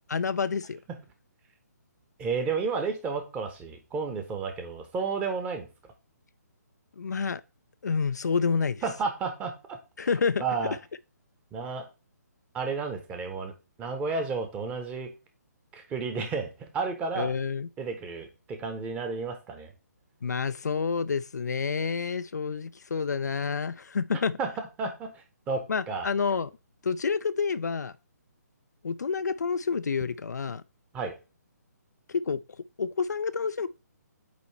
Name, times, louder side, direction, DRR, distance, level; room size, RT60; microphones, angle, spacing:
voice 1, 0.1-0.8 7.0-7.4 7.8-8.8 10.0-10.4 17.2-17.7 20.2-24.4 25.7-26.5 26.8-27.9 28.8-30.6 32.1-32.4 32.8-33.7, left 5 dB, 70° left, 0.4 m, -28 dB
voice 2, 2.2-5.7 8.8-9.8 10.4-10.7 11.5-11.9 12.5-13.5 13.8-15.1 15.7-17.3 17.8-19.7 24.4-24.5 24.8-25.1 25.5-26.1 30.9-31.1, right 4 dB, 15° right, 1.1 m, -32 dB
8.3 x 3.1 x 4.4 m
figure-of-eight pair, 140°, 10 cm